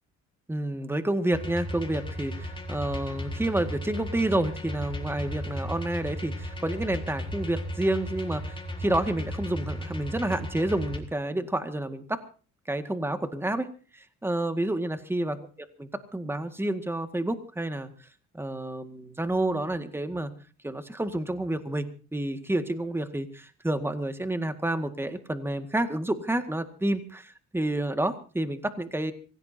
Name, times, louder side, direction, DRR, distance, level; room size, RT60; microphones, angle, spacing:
voice 1, 0.5-12.2 12.7-13.7 13.9-15.4 15.8-17.9 18.3-20.3 20.6-29.1, right 1 dB, 10° right, 8 dB, 1.9 m, -29 dB
sound 1, 1.3-11.0, left 1 dB, 15° left, 3.9 m, -35 dB
25.5 x 16.5 x 2.8 m, 0.37 s
cardioid pair, 90°, 30 cm